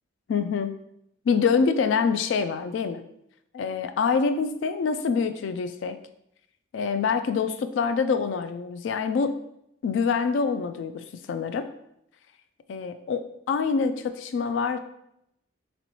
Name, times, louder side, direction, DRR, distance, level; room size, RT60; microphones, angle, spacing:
voice 1, 0.3-0.8 1.3-3.0 3.5-6.0 6.7-9.3 9.8-11.7 12.7-14.8, left 5 dB, 75° left, 9 dB, 0.3 m, -25 dB
4.2 x 3.0 x 3.0 m, 0.76 s
head